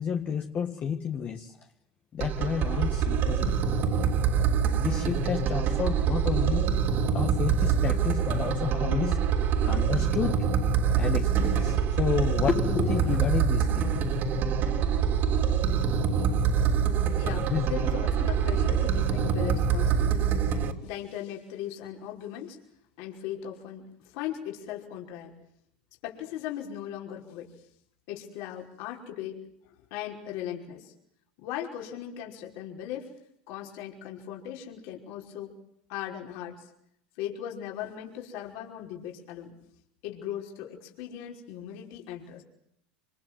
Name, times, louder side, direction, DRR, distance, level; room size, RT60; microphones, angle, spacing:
voice 1, 0.0-1.6 2.1-3.6 4.8-6.7 7.1-9.2 9.7-10.5 11.0-14.1 17.5-17.6, left 7 dB, 30° left, 1.8 m, -30 dB
sound 1, 2.2-20.7, right 7 dB, 40° right, 3.6 m, -25 dB
voice 2, 17.2-20.3 20.8-22.6 23.0-25.3 26.0-27.6 28.1-29.4 29.6-30.9 31.4-33.1 33.5-35.6 35.9-36.7 37.2-39.6 40.0-42.4, left 10 dB, 60° left, 5.5 m, -38 dB
27.0 x 26.0 x 7.6 m
supercardioid pair, 130°, 5 cm